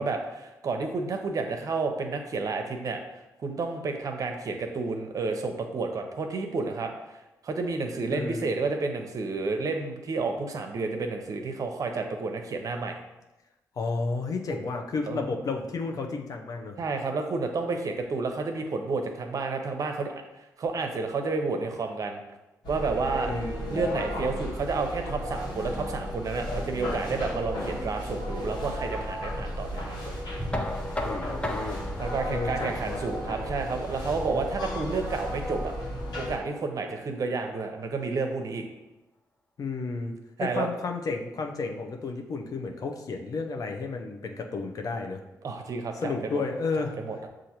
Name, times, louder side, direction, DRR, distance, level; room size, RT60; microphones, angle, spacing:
voice 1, 0.0-3.0 3.4-7.2 7.4-13.0 15.1-15.3 16.8-22.2 22.7-23.3 23.7-30.1 32.0-35.7 36.2-38.7 40.4-40.7 45.4-46.4 46.8-47.3, right 4 dB, 55° right, 4 dB, 0.6 m, -30 dB
voice 2, 8.1-8.5 13.8-16.7 23.3-23.8 31.0-31.8 32.3-33.0 39.6-40.1 40.4-45.2 46.0-47.0, left 4 dB, 60° left, 4 dB, 0.6 m, -32 dB
sound 1, 22.6-36.4, equal, 80° left, 1.4 m, -34 dB
Knock, 30.5-36.3, left 1 dB, 15° left, 0.6 m, -38 dB
6.4 x 2.5 x 2.9 m, 0.99 s
supercardioid pair, 55°, 7 cm